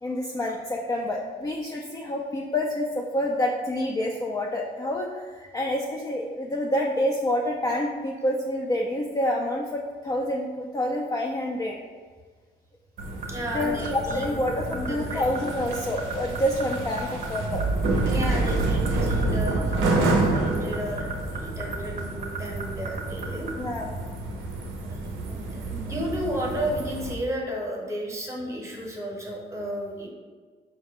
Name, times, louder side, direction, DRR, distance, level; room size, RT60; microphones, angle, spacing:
voice 1, 0.0-11.8 13.5-17.6 23.6-23.9, left 1 dB, 20° left, -2 dB, 0.4 m, -28 dB
sound 1, 13.0-23.5, right 6 dB, 40° right, 0.6 m, -34 dB
sound 2, 13.0-27.1, right 2 dB, 85° right, 0.6 m, -28 dB
voice 2, 13.3-15.2 18.0-23.5 24.8-30.1, equal, 15° right, -1 dB, 0.9 m, -33 dB
4.7 x 2.1 x 3.5 m, 1.5 s
cardioid pair, 90°, 20 cm